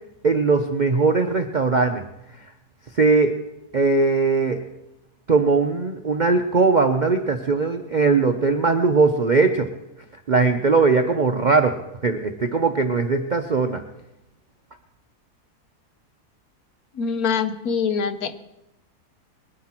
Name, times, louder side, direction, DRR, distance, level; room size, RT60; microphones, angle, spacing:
voice 1, 0.2-2.0 3.0-3.4 3.7-4.6 5.3-9.7 10.3-11.8 12.0-13.8, right 4 dB, 50° right, 5 dB, 0.5 m, -19 dB
voice 2, 17.0-18.4, left 6 dB, 70° left, 11 dB, 1.3 m, -24 dB
21.5 x 9.9 x 4.4 m, 0.90 s
omnidirectional pair, 1.7 m